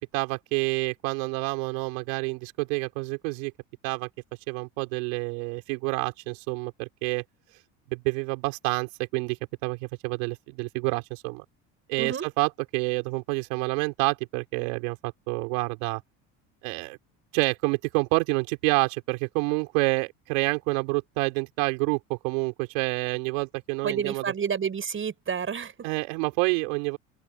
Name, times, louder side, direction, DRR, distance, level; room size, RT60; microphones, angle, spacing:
voice 1, 0.1-3.5 3.8-4.1 4.5-7.2 7.9-9.4 9.6-11.4 11.9-16.0 16.6-17.0 17.3-24.2 25.8-27.0, right 31 dB, 80° right, 6.1 m, -28 dB
voice 2, 23.8-25.7, right 7 dB, 35° right, 6.3 m, -29 dB
open air
supercardioid pair, 95°, 38 cm